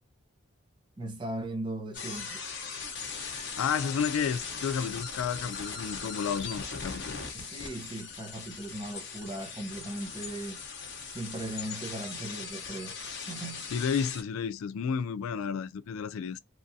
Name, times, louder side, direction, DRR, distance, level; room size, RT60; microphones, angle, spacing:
voice 1, 1.0-2.4 7.3-10.6 11.1-13.0 13.3-13.7, right 1 dB, 20° right, 0.7 m, -38 dB
sound 1, 1.9-14.2, left 5 dB, 55° left, 0.8 m, -39 dB
voice 2, 3.6-7.2 13.7-16.4, left 7 dB, 80° left, 0.3 m, -31 dB
3.0 x 2.5 x 2.6 m
head